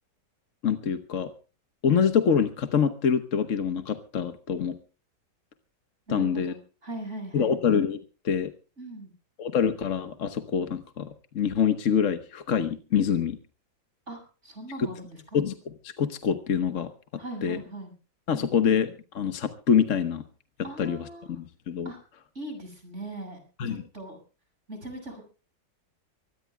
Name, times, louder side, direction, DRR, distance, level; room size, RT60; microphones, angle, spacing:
voice 1, 0.6-1.3 1.8-4.8 6.1-6.5 7.3-8.0 8.2-8.5 9.4-13.4 15.3-15.6 15.8-16.9 17.4-17.6 18.3-20.2 20.8-21.9 23.6-23.8, left 7 dB, 50° left, 9 dB, 1.2 m, -25 dB
voice 2, 6.1-7.6 8.8-9.1 14.1-15.2 17.2-17.9 18.3-18.7 20.6-21.3 21.8-22.0 22.3-24.2 24.7-25.3, right 1 dB, 40° right, 5 dB, 6.8 m, -40 dB
24.5 x 19.5 x 2.2 m, 0.35 s
omnidirectional pair, 1.9 m